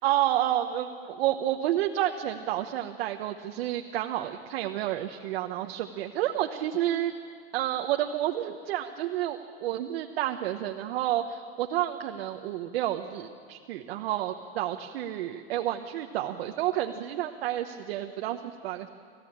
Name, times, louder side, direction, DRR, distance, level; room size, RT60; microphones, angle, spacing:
voice 1, 0.0-7.1 7.5-18.9, right 12 dB, 80° right, 4 dB, 1.1 m, -30 dB
28.5 x 15.0 x 8.7 m, 2.1 s
supercardioid pair, 120°, 30 cm